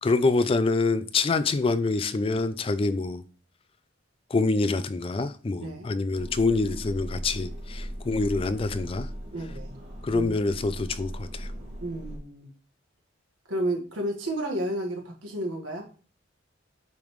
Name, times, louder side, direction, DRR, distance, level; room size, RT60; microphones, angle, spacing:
voice 1, 0.0-3.2 4.3-9.1 10.0-11.5, left 3 dB, 30° left, 0.3 m, -26 dB
sound 1, 6.1-12.2, equal, 65° right, 2.3 m, -38 dB
voice 2, 9.3-9.7 10.1-10.4 11.8-12.5 13.5-15.9, right 1 dB, 85° right, 1.6 m, -31 dB
8.5 x 3.5 x 3.1 m
head